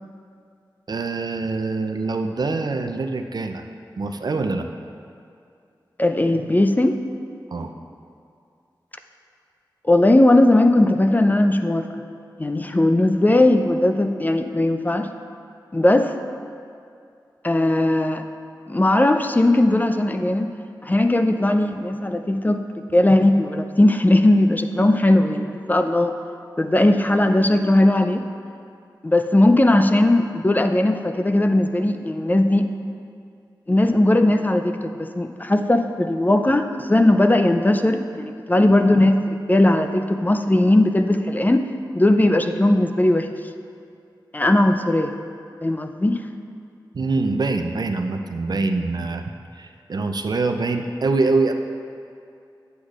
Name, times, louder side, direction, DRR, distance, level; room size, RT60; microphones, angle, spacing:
voice 1, 0.9-3.6 4.0-4.7 7.5-7.7 46.9-49.2 49.5-51.5, right 3 dB, 55° right, 6 dB, 0.5 m, -24 dB
voice 2, 6.0-7.0 9.8-11.9 12.4-15.1 15.7-16.1 17.4-18.2 18.7-20.5 20.8-22.6 22.9-26.1 26.6-28.2 29.0-32.7 33.7-41.7 41.9-43.3 44.3-45.1 45.6-46.2, left 1 dB, 20° left, 7 dB, 0.4 m, -18 dB
8.2 x 7.9 x 2.4 m, 2.4 s
cardioid pair, 45°, 8 cm